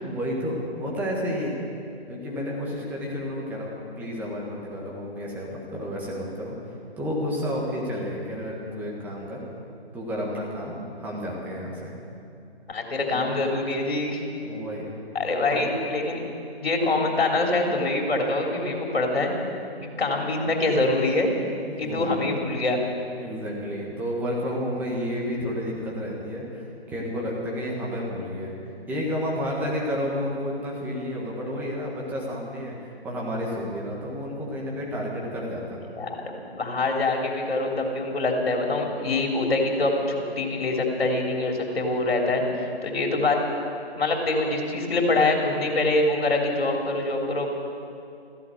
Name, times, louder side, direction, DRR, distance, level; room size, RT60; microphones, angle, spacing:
voice 1, 0.0-1.5 2.1-9.4 9.9-11.9 13.1-13.2 14.4-14.8 15.5-15.7 21.7-22.2 23.2-28.5 28.9-32.7 33.0-35.8, equal, 5° right, -3 dB, 1.4 m, -31 dB
voice 2, 12.7-14.2 15.1-16.2 16.6-19.3 20.0-21.3 21.8-22.8 35.9-43.4 43.9-47.5, left 2 dB, 65° left, 1 dB, 3.7 m, -24 dB
15.5 x 11.0 x 8.5 m, 2.6 s
figure-of-eight pair, 155°, 32 cm